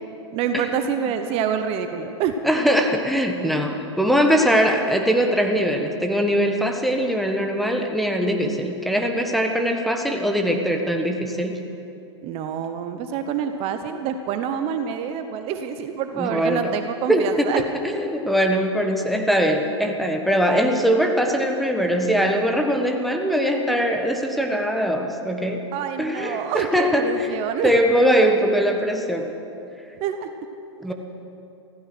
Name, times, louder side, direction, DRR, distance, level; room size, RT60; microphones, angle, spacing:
voice 1, 0.3-2.3 12.2-17.6 25.7-27.7 30.0-30.3, right 8 dB, 40° right, 7 dB, 1.0 m, -27 dB
voice 2, 2.4-11.6 16.2-16.7 17.1-25.6 26.0-29.3 30.8-30.9, equal, ahead, 2 dB, 1.4 m, -21 dB
16.0 x 15.0 x 6.2 m, 2.8 s
hypercardioid pair, 110°, 15 cm